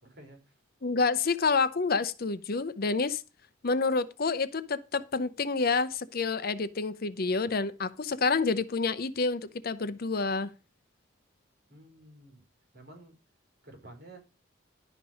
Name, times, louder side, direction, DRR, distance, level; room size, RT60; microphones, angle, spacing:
voice 1, 0.0-0.4 11.7-12.4 12.7-13.1 13.6-14.2, right 1 dB, 50° right, 4.4 m, -51 dB
voice 2, 0.8-3.2 3.6-10.5, left 4 dB, 50° left, 0.7 m, -28 dB
11.5 x 5.3 x 6.3 m
head